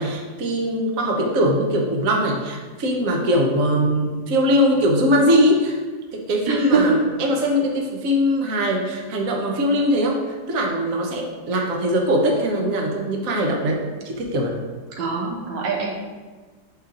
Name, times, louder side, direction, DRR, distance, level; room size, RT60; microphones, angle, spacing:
voice 1, 0.0-5.8 6.1-14.5, equal, 50° right, 0 dB, 1.3 m, -21 dB
voice 2, 6.5-7.0 14.9-16.0, right 5 dB, 75° right, 0 dB, 1.5 m, -22 dB
6.6 x 5.6 x 3.8 m, 1.4 s
omnidirectional pair, 2.1 m